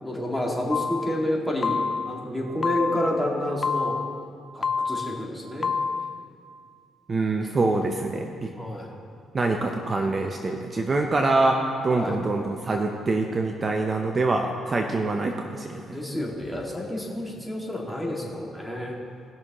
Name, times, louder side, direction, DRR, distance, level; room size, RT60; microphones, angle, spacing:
voice 1, 0.0-4.0 4.5-5.7 8.6-8.9 11.9-12.2 15.9-19.0, left 1 dB, 5° left, -3 dB, 2.0 m, -29 dB
sound 1, 0.7-1.2 1.6-2.2 2.6-3.2 3.6-4.2 4.6-5.2 5.6-6.2, left 5 dB, 35° left, 0.4 m, -27 dB
voice 2, 7.1-8.5 9.3-16.0, right 2 dB, 35° right, 3 dB, 0.7 m, -25 dB
18.5 x 6.3 x 3.0 m, 2.2 s
cardioid pair, 90°, 0 cm